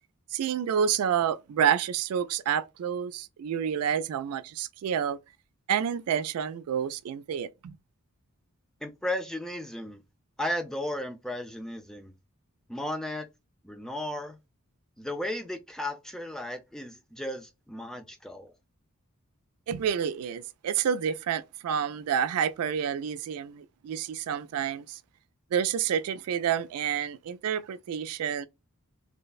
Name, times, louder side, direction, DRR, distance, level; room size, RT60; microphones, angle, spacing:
voice 1, 0.3-5.2 5.7-7.8 19.7-25.0 25.5-28.5, right 8 dB, 85° right, 0.3 m, -29 dB
voice 2, 8.8-10.0 10.4-12.1 12.7-13.3 13.6-14.4 15.0-18.5, left 1 dB, ahead, 0.3 m, -35 dB
3.3 x 2.0 x 2.2 m
head